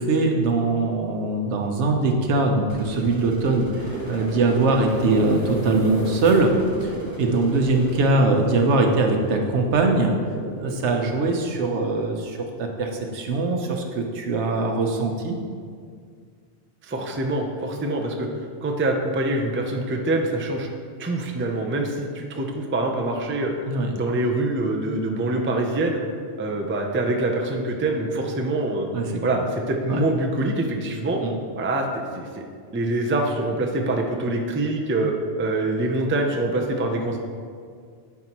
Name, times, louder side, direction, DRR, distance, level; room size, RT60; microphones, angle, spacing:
voice 1, 0.0-6.5 6.8-10.1 10.6-15.4 23.7-23.9 28.9-29.0 29.9-30.0 31.2-31.3, right 3 dB, 85° right, 3 dB, 1.1 m, -22 dB
sound 1, 2.7-8.1, right 1 dB, 40° right, 1.2 m, -40 dB
sound 2, 3.5-11.1, right 3 dB, 65° right, 0.7 m, -35 dB
sound 3, 3.8-11.8, left 1 dB, 85° left, 1.6 m, -39 dB
voice 2, 16.8-18.3 18.6-20.7 21.0-23.5 23.9-26.0 26.4-28.9 29.2-31.2 31.6-32.4 32.7-35.1 35.4-37.2, right 2 dB, 20° right, 2 dB, 0.3 m, -25 dB
9.5 x 4.6 x 2.9 m, 2.1 s
omnidirectional pair, 1.1 m